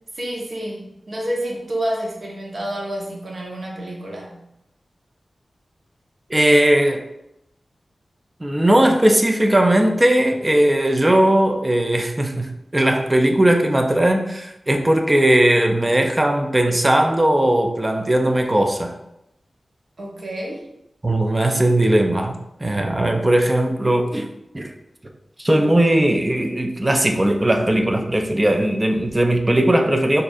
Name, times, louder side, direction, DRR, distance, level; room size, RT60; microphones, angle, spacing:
voice 1, 0.1-4.4 20.0-20.7, right 1 dB, 60° right, 0.9 m, -29 dB
voice 2, 6.3-7.0 8.4-19.0 21.0-24.3 24.5-24.7 25.4-30.2, right 1 dB, 20° right, 0.4 m, -18 dB
4.2 x 2.5 x 2.4 m
wide cardioid pair, 100°, 0 cm